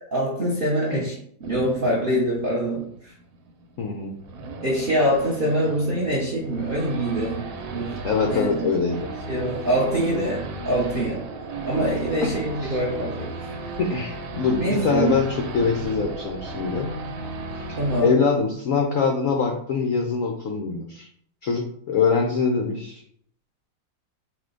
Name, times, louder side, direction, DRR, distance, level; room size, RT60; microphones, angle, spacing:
voice 1, 0.1-1.1 1.4-3.1 4.6-8.0 8.3-8.7 9.3-11.2 11.6-13.6 14.5-15.1 17.8-18.2, right 1 dB, 60° right, -4 dB, 0.5 m, -24 dB
Race car auto racing / Idling / Accelerating revving vroom, 1.4-18.0, right 3 dB, 90° right, 1.4 m, -35 dB
voice 2, 3.8-4.1 8.0-9.1 9.9-10.3 12.6-12.8 13.8-16.9 17.5-17.6 18.0-21.1 21.4-23.0, left 5 dB, 85° left, 2 dB, 0.7 m, -24 dB
4.8 x 2.2 x 3.7 m, 0.64 s
omnidirectional pair, 2.1 m